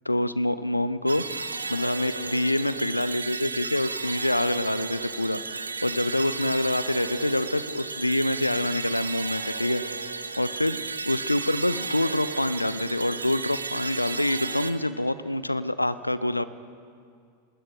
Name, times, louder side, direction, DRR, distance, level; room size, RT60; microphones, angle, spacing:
voice 1, 0.1-10.1 10.4-16.4, left 1 dB, 85° left, 16 dB, 0.7 m, -26 dB
sound 1, 1.1-14.7, right 4 dB, 75° right, 1.0 m, -34 dB
27.5 x 20.0 x 4.8 m, 2.3 s
figure-of-eight pair, 90°, 0 cm